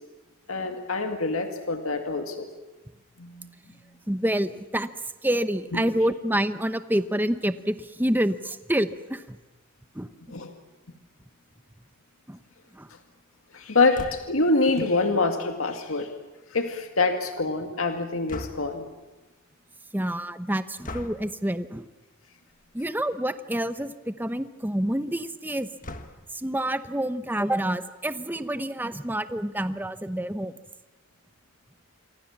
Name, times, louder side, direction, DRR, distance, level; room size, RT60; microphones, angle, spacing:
voice 1, 0.5-2.5 3.2-3.5 5.7-5.8 10.3-10.5 13.5-16.1 16.5-18.9, left 3 dB, 80° left, 5 dB, 2.1 m, -25 dB
voice 2, 4.1-4.9 5.2-9.4 9.9-10.1 12.3-12.4 12.7-12.9 19.9-21.9 22.7-25.7 26.3-30.5, right 1 dB, 10° right, 11 dB, 0.8 m, -27 dB
sound 1, 13.9-14.5 18.3-18.9 20.8-21.3 22.5-22.8 23.2-23.3 23.5-23.6 25.8-26.4, left 2 dB, 40° left, 1.6 m, -39 dB
27.5 x 23.5 x 7.2 m, 1.1 s
head